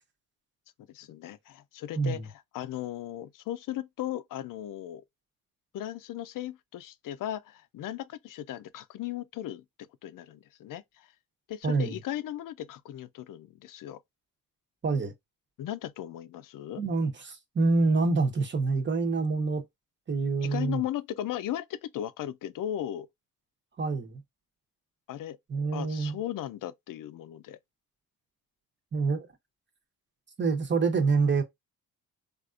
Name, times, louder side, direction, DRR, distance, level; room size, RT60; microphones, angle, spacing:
voice 1, 0.9-5.0 5.7-9.6 10.0-11.1 11.5-14.0 15.6-16.8 20.4-23.1 25.1-25.4 25.7-27.6, left 12 dB, 65° left, 0.5 m, -37 dB
voice 2, 1.9-2.3 11.6-12.0 14.8-15.1 16.8-19.6 20.1-20.8 23.8-24.2 25.5-26.2 28.9-29.3 30.4-31.4, right 4 dB, 30° right, 1.0 m, -26 dB
3.4 x 2.5 x 2.4 m
cardioid pair, 80°, 36 cm